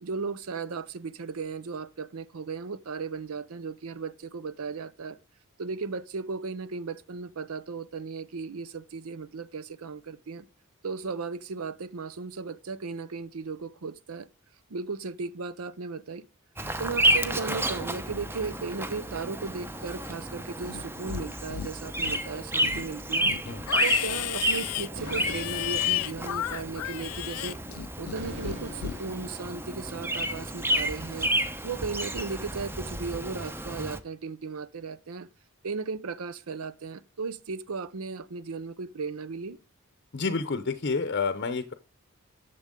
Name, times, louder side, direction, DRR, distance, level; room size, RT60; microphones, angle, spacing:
voice 1, 0.0-5.2 5.6-10.4 10.8-14.3 14.7-16.2 16.8-23.3 23.8-31.3 31.6-35.3 35.6-39.6, right 4 dB, 75° right, 0.6 m, -36 dB
Bird vocalization bird call bird song, 16.6-34.0, right 1 dB, 10° right, 0.7 m, -31 dB
Livestock farm animals working animals, 20.6-21.2 21.5-22.2 22.6-28.2 28.4-29.0, left 13 dB, 80° left, 0.4 m, -33 dB
sound 1, 25.0-26.4 28.1-29.6, equal, 50° right, 2.1 m, -42 dB
voice 2, 40.1-41.7, left 4 dB, 50° left, 0.7 m, -29 dB
11.0 x 6.9 x 3.7 m
head